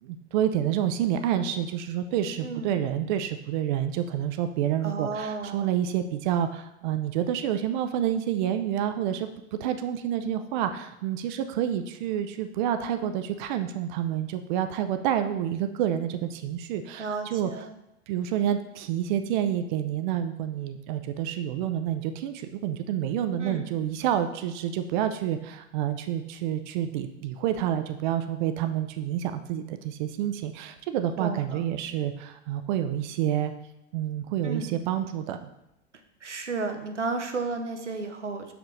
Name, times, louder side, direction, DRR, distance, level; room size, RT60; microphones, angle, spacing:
voice 1, 0.0-9.3 9.6-17.5 18.1-33.5 33.9-35.5, right 10 dB, 45° right, 9 dB, 0.4 m, -28 dB
voice 2, 2.4-2.8 4.8-5.7 17.0-17.7 23.4-23.7 31.2-31.6 34.4-34.7 36.2-38.5, right 3 dB, 85° right, 6 dB, 0.7 m, -33 dB
6.2 x 4.9 x 3.2 m, 0.87 s
figure-of-eight pair, 85°, 35 cm